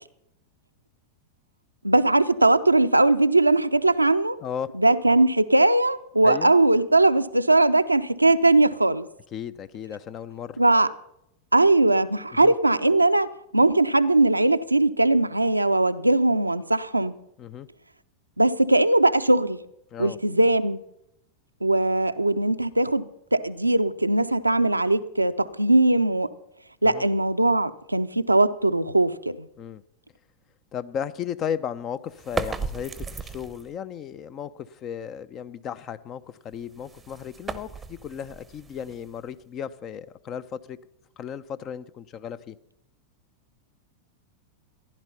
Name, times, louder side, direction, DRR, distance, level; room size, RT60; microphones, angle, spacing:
voice 1, 1.8-4.4 4.7-9.1 10.6-10.9 11.5-13.3 13.5-17.2 18.4-19.6 20.0-20.8 21.6-26.3 26.8-29.5, right 2 dB, 85° right, 0.6 m, -20 dB
voice 2, 4.4-4.7 6.2-6.5 9.3-10.6 12.3-12.5 17.4-17.7 19.9-20.2 26.8-27.0 29.6-29.8 30.7-40.8 41.2-42.6, left 8 dB, 30° left, 0.7 m, -35 dB
sound 1, 32.1-33.8 36.5-39.4, right 5 dB, 15° right, 0.8 m, -36 dB
15.0 x 11.0 x 5.7 m
figure-of-eight pair, 90°, 0 cm